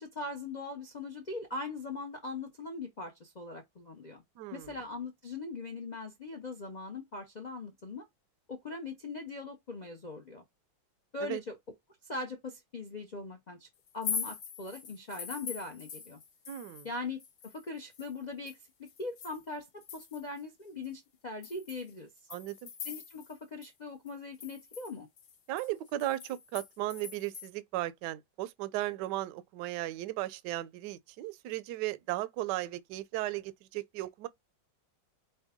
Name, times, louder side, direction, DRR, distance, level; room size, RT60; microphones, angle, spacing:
voice 1, 0.0-4.2 4.5-8.0 8.5-10.4 11.1-11.5 12.0-13.7 13.9-16.2 16.8-19.7 19.9-22.1 22.8-25.1, left 3 dB, 75° left, 0.4 m, -41 dB
voice 2, 4.4-4.7 11.2-11.4 16.5-16.9 22.3-22.7 25.5-34.3, right 15 dB, 75° right, 1.1 m, -36 dB
sound 1, 13.9-16.9 17.2-20.4 20.8-20.9 21.4-23.4 23.6-23.7 24.1-27.5, left 7 dB, 50° left, 1.0 m, -42 dB
5.4 x 2.2 x 3.6 m
omnidirectional pair, 2.0 m